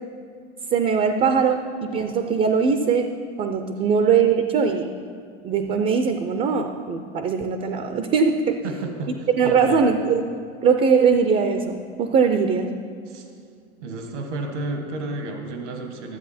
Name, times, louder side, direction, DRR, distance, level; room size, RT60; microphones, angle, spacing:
voice 1, 0.7-3.1 3.4-4.9 5.4-8.6 9.4-10.2 10.6-12.7, right 6 dB, 25° right, 7 dB, 0.5 m, -21 dB
voice 2, 8.6-9.9 13.1-13.3 13.8-16.2, right 2 dB, 80° right, 4 dB, 1.4 m, -32 dB
13.0 x 7.7 x 4.2 m, 2.3 s
supercardioid pair, 120°, 35 cm